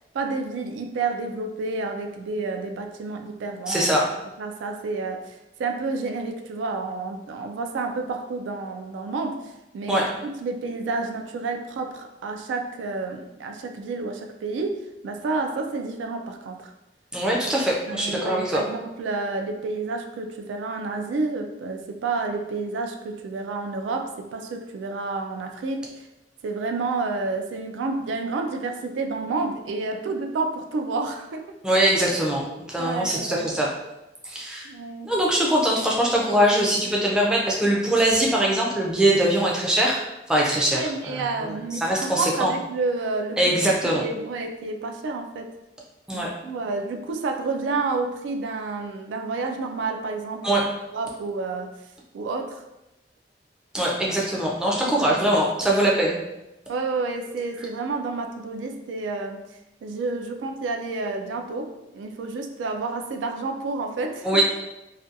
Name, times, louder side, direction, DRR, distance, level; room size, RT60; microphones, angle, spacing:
voice 1, 0.1-3.9 4.4-14.8 15.0-16.7 17.9-26.0 26.4-31.5 32.8-33.5 34.6-35.1 40.7-45.5 46.1-51.7 52.1-52.6 54.8-55.2 56.7-59.4 59.8-64.4, right 3 dB, 90° right, 5 dB, 0.3 m, -30 dB
voice 2, 3.7-4.0 9.9-10.0 17.1-18.6 31.6-33.7 34.2-34.7 35.0-40.0 40.3-42.5 43.4-44.0 46.1-46.3 50.4-50.6 53.7-56.2 64.2-64.4, right 1 dB, 5° right, -3 dB, 0.4 m, -22 dB
2.4 x 2.2 x 2.6 m, 0.94 s
head